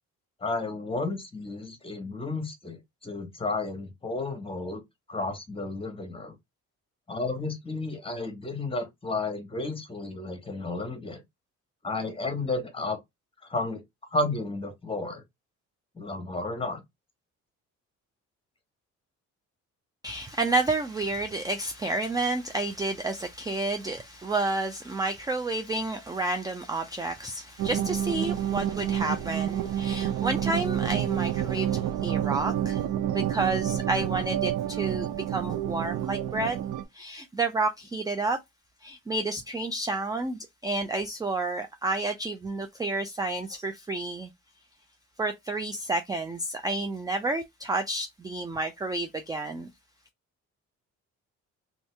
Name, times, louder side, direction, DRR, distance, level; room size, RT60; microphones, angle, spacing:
voice 1, 0.4-4.8 5.1-6.3 7.1-11.2 11.8-13.0 13.5-13.8 14.1-15.2 16.0-16.8, left 2 dB, 20° left, 1.2 m, -32 dB
voice 2, 20.0-36.6 36.9-38.4 38.8-44.3 45.2-49.7, right 2 dB, 15° right, 0.4 m, -30 dB
sound 1, 27.6-36.8, right 10 dB, 80° right, 0.5 m, -29 dB
2.7 x 2.6 x 3.2 m
cardioid pair, 90°, 30 cm